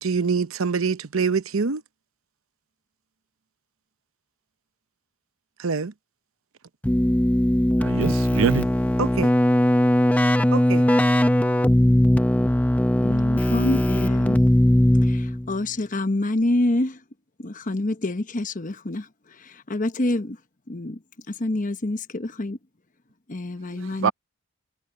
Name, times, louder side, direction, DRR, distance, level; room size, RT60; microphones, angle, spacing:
voice 1, 0.0-1.8 5.6-5.9 9.0-9.3, right 5 dB, 90° right, 0.8 m, -24 dB
Keyboard (musical), 6.8-15.5, left 1 dB, 5° left, 0.5 m, -19 dB
voice 2, 7.8-8.7 10.5-10.9 24.0-24.1, right 6 dB, 65° right, 0.4 m, -24 dB
voice 3, 13.0-14.4 15.0-17.0 17.4-19.1 19.4-20.4 20.7-21.0 21.3-22.6 23.3-24.1, left 1 dB, 40° left, 1.0 m, -26 dB
head